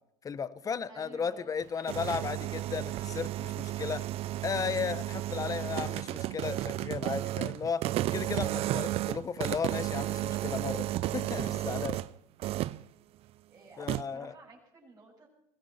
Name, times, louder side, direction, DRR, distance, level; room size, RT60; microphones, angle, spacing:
voice 1, 0.2-4.0 4.4-7.8 8.1-12.0 13.8-14.3, left 6 dB, 30° left, 15 dB, 1.0 m, -35 dB
voice 2, 0.8-1.5 13.5-15.3, right 2 dB, 25° right, -6 dB, 6.8 m, -53 dB
sound 1, 1.6-12.1 12.4-12.8 13.9-14.0, right 15 dB, 55° right, 0.6 m, -33 dB
21.5 x 16.0 x 4.2 m, 0.77 s
supercardioid pair, 100°, 12 cm